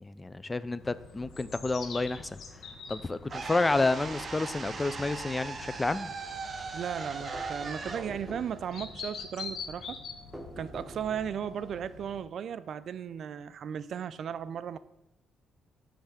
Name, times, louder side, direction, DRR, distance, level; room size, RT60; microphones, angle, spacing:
voice 1, 0.0-2.3 2.9-6.1, left 3 dB, 20° left, 0.3 m, -30 dB
sound 1, 0.8-12.2, left 5 dB, 65° left, 1.0 m, -46 dB
sound 2, 3.3-4.3 7.3-8.7 10.3-11.5, equal, 5° right, 0.9 m, -46 dB
sound 3, 3.3-9.4, right 4 dB, 35° right, 0.8 m, -39 dB
voice 2, 6.7-10.0 10.6-14.8, right 8 dB, 60° right, 0.3 m, -36 dB
8.1 x 3.3 x 6.3 m
cardioid pair, 90°, 0 cm